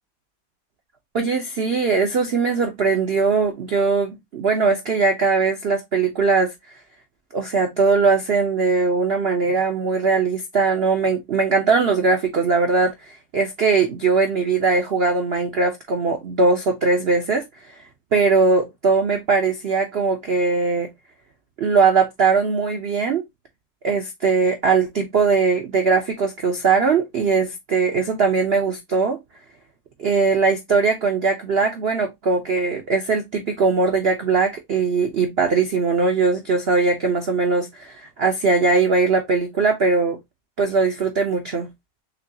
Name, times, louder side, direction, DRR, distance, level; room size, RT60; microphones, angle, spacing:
voice 1, 1.1-6.5 7.3-17.5 18.1-20.9 21.6-23.2 23.8-29.2 30.0-40.2 40.6-41.7, right 4 dB, 80° right, 0.5 m, -20 dB
6.5 x 2.3 x 2.7 m
omnidirectional pair, 2.0 m